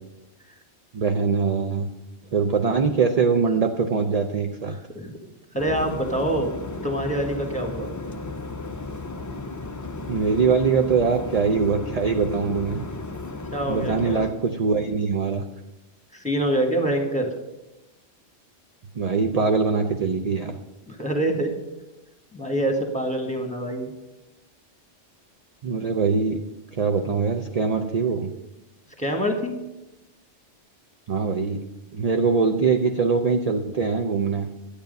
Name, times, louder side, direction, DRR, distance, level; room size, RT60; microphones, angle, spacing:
voice 1, 0.9-1.9 2.3-4.8 10.1-12.8 13.7-15.4 19.0-20.5 25.6-26.4 26.7-28.3 31.1-31.6 31.9-34.5, right 5 dB, 40° right, 5 dB, 0.6 m, -22 dB
voice 2, 4.7-5.2 5.5-6.6 6.8-7.9 13.5-14.2 16.1-17.3 20.9-21.5 22.3-23.9 29.0-29.5, right 1 dB, 5° left, 3 dB, 1.6 m, -25 dB
sound 1, 5.6-14.3, left 3 dB, 25° left, 0.4 m, -34 dB
12.0 x 8.7 x 5.3 m, 1.0 s
omnidirectional pair, 1.2 m